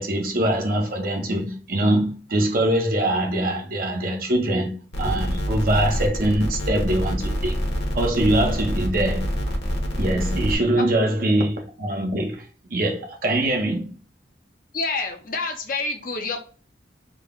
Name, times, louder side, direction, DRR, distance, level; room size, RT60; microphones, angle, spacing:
voice 1, 0.0-7.5 7.9-9.3 10.0-14.0, right 1 dB, 55° right, 0.8 m, -23 dB
sound 1, 4.9-10.6, equal, 85° left, 1.0 m, -26 dB
voice 2, 14.7-16.4, left 3 dB, 50° left, 0.7 m, -27 dB
4.0 x 2.2 x 3.5 m
head